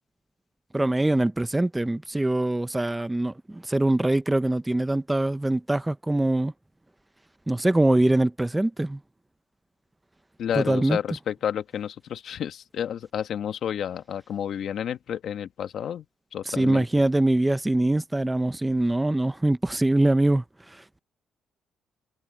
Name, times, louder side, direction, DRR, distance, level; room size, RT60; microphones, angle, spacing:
voice 1, 0.7-6.5 7.5-9.0 10.5-11.0 16.5-20.4, right 1 dB, 10° right, 0.8 m, -23 dB
voice 2, 10.4-16.0 16.3-16.8, left 9 dB, 65° left, 1.6 m, -30 dB
cardioid pair, 90°, 0 cm